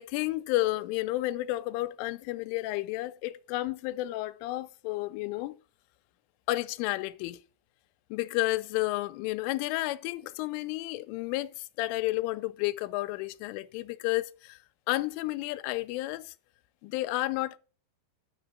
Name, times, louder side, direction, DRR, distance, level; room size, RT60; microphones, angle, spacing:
voice 1, 0.0-5.5 6.5-7.4 8.1-14.6 14.9-16.3 16.8-17.6, left 18 dB, 80° left, 3.2 m, -31 dB
11.0 x 7.5 x 5.8 m
omnidirectional pair, 5.7 m